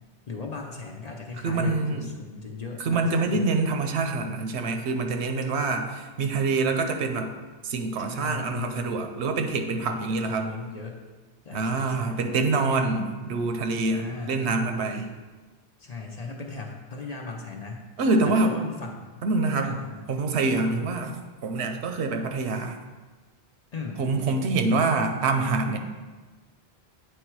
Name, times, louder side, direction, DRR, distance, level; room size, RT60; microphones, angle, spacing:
voice 1, 0.3-3.5 8.1-8.9 9.8-11.0 11.4-12.4 13.9-14.5 15.8-17.9 18.2-19.1 19.6-20.0 20.7-21.0 23.7-24.3, left 4 dB, 45° left, 1 dB, 0.7 m, -37 dB
voice 2, 1.4-2.1 2.8-7.3 7.6-10.5 11.5-15.1 18.0-18.6 19.2-19.7 20.1-21.1 21.4-22.8 24.0-25.8, right 3 dB, 85° right, 5 dB, 1.0 m, -25 dB
8.3 x 3.3 x 4.6 m, 1.3 s
omnidirectional pair, 1.1 m